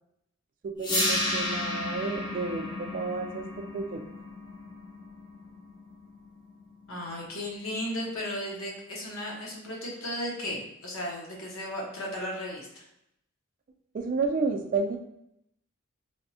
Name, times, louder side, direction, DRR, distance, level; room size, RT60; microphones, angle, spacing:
voice 1, 0.6-3.5 3.7-4.0 13.9-15.0, right 4 dB, 40° right, 3 dB, 0.3 m, -31 dB
sound 1, 0.8-6.8, left 2 dB, 20° left, 0.5 m, -33 dB
voice 2, 6.9-12.8, left 1 dB, 70° left, -2 dB, 0.8 m, -35 dB
3.4 x 2.0 x 2.7 m, 0.79 s
head